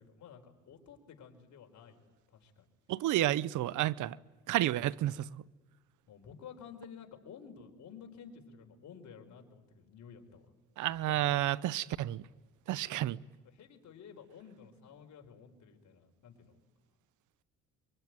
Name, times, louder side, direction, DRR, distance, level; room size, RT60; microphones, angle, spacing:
voice 1, 0.0-2.0 2.3-2.6 6.1-10.5 11.0-11.3 13.4-16.6, left 7 dB, 70° left, 4.4 m, -52 dB
voice 2, 2.9-4.2 4.5-5.4 10.8-12.2 12.7-13.2, right 14 dB, 80° right, 0.7 m, -31 dB
24.5 x 24.0 x 9.5 m
cardioid pair, 90°, 30 cm